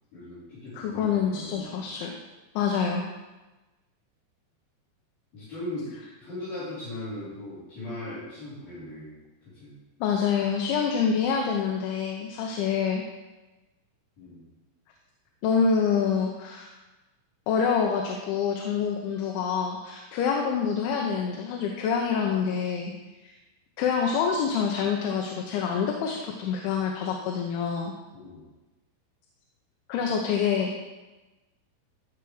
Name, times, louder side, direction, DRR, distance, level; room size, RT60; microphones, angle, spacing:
voice 1, 0.1-1.8 5.3-9.1 9.5-9.8 14.2-14.4 28.1-28.4, left 1 dB, 55° left, -13 dB, 6.1 m, -38 dB
voice 2, 0.8-2.2 2.6-3.0 10.0-13.0 15.4-16.7 17.5-22.9 23.2-23.3 23.8-27.9 29.9-30.8, left 6 dB, 85° left, 1 dB, 3.4 m, -26 dB
14.0 x 6.1 x 4.9 m, 1.1 s
omnidirectional pair, 5.3 m